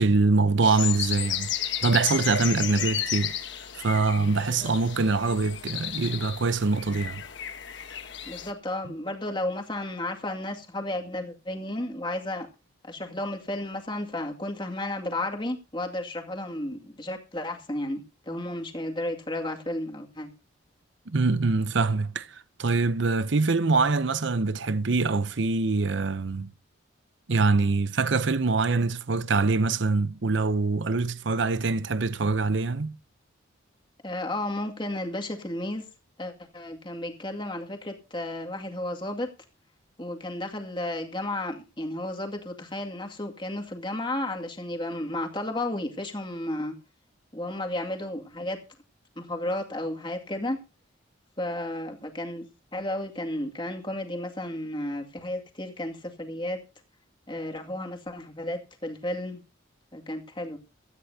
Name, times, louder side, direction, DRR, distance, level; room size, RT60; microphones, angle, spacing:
voice 1, 0.0-1.5 1.8-3.4 3.8-7.2 21.1-26.5 27.3-33.0, right 3 dB, 65° right, 0.7 m, -24 dB
sound 1, 0.6-8.5, left 10 dB, 60° left, 1.2 m, -33 dB
voice 2, 8.2-12.5 12.8-20.3 34.0-35.8 36.2-39.3 40.0-46.7 47.3-48.6 49.2-50.6 51.4-52.5 52.7-56.6 57.3-59.4 59.9-60.6, left 1 dB, 25° left, 2.3 m, -33 dB
17.0 x 13.5 x 2.8 m
head